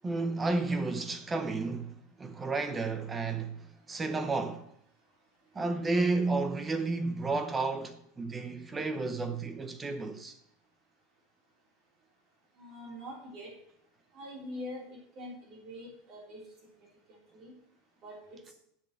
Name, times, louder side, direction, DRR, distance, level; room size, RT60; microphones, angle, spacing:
voice 1, 0.0-4.7 5.5-10.3, right 3 dB, 10° right, 0.8 m, -32 dB
voice 2, 12.6-13.5 14.1-16.4 17.3-17.5 18.0-18.4, left 1 dB, 30° right, 3.4 m, -44 dB
7.9 x 6.9 x 7.4 m
supercardioid pair, 180°, 0 cm